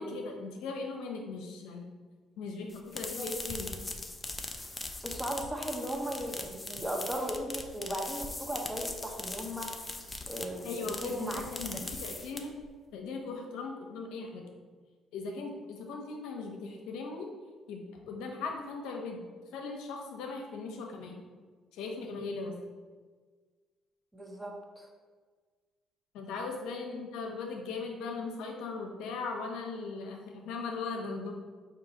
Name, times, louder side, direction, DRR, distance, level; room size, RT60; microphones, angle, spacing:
voice 1, 0.0-1.9 2.4-3.7 10.6-12.5 12.9-14.5 15.1-17.3 17.7-19.2 19.5-21.2 21.7-22.6 26.1-31.3, left 4 dB, 80° left, 2 dB, 0.7 m, -38 dB
sound 1, 2.7-12.7, left 2 dB, 20° left, 0.5 m, -40 dB
voice 2, 5.0-9.9 10.3-11.4 11.7-11.8 24.1-24.9 26.9-27.0, equal, 10° right, 0 dB, 0.9 m, -37 dB
4.6 x 2.8 x 4.0 m, 1.5 s
supercardioid pair, 75°, 0 cm